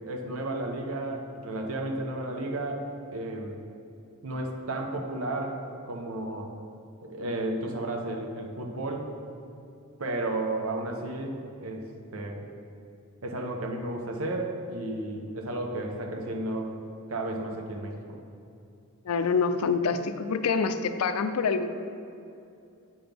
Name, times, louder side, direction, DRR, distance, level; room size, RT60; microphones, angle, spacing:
voice 1, 0.0-2.8 3.1-3.5 4.2-6.5 7.0-9.1 10.0-11.9 12.1-12.5 13.2-16.7 17.1-18.0, right 2 dB, 70° right, 2 dB, 0.9 m, -33 dB
voice 2, 19.1-21.7, left 5 dB, 85° left, 10 dB, 0.4 m, -26 dB
8.6 x 5.9 x 3.5 m, 2.6 s
head